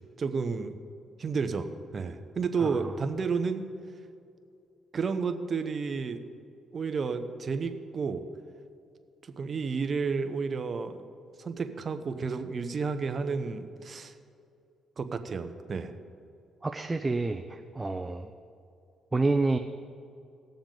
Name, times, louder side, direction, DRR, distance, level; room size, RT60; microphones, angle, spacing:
voice 1, 0.2-0.7 1.2-1.7 1.9-3.6 4.9-6.2 6.7-8.2 9.2-11.0 11.4-14.1 15.0-15.9, right 5 dB, 45° right, 8 dB, 0.9 m, -31 dB
voice 2, 16.6-18.3 19.1-19.6, right 3 dB, 20° right, 6 dB, 0.5 m, -28 dB
19.0 x 7.0 x 3.9 m, 2.5 s
cardioid pair, 90°, 0 cm